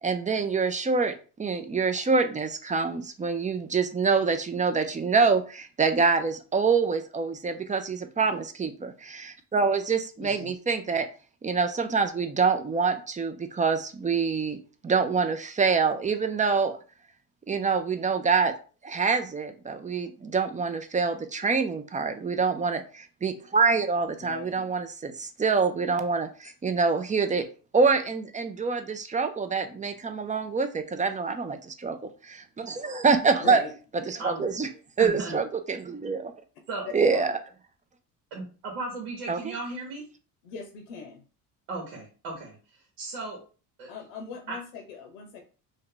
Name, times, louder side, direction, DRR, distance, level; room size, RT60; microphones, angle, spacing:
voice 1, 0.0-11.1 11.4-14.6 14.8-16.8 17.5-18.5 18.8-27.4 27.7-32.0 32.2-33.6 34.1-34.7 35.0-36.3 36.9-37.3 39.3-39.5, right 5 dB, 20° right, 8 dB, 0.4 m, -26 dB
voice 2, 10.2-10.6 24.2-24.7 33.4-33.7 35.3-35.4 37.1-37.4 40.4-41.2 43.9-45.4, left 6 dB, 85° left, 4 dB, 0.7 m, -39 dB
voice 3, 35.0-35.4 36.7-36.9 38.3-40.0 41.7-43.4 43.8-43.9 44.5-44.6, right 2 dB, 85° right, -1 dB, 1.2 m, -36 dB
2.7 x 2.4 x 3.7 m, 0.36 s
supercardioid pair, 75°, 45 cm